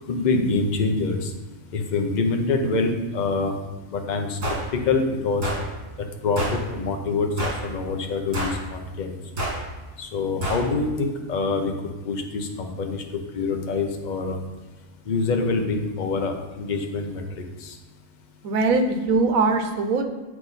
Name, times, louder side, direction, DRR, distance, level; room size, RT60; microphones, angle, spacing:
voice 1, 0.1-1.3 1.7-3.5 3.9-4.4 4.7-5.4 6.2-6.4 6.7-9.2 10.0-11.7 12.0-13.0 13.3-14.4 15.1-17.7, left 3 dB, 40° left, 4 dB, 0.7 m, -25 dB
sound 1, 4.4-4.6 5.4-5.6 6.4-6.6 7.4-7.7 8.3-8.6 9.4-9.6 10.4-10.6, right 1 dB, 65° right, 2.3 m, -27 dB
voice 2, 18.4-20.0, right 3 dB, 85° right, 5 dB, 1.2 m, -21 dB
8.3 x 4.8 x 4.0 m, 1.2 s
omnidirectional pair, 1.4 m